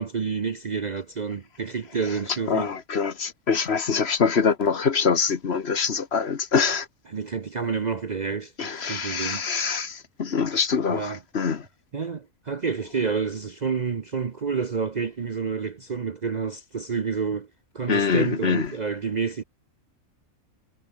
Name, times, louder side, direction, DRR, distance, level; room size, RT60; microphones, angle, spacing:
voice 1, 0.0-2.7 7.1-9.5 10.9-11.2 11.9-17.5 17.7-19.4, right 5 dB, 40° right, 0.7 m, -29 dB
voice 2, 2.5-6.9 8.6-11.6 17.9-18.7, left 5 dB, 50° left, 1.4 m, -24 dB
omnidirectional pair, 1.4 m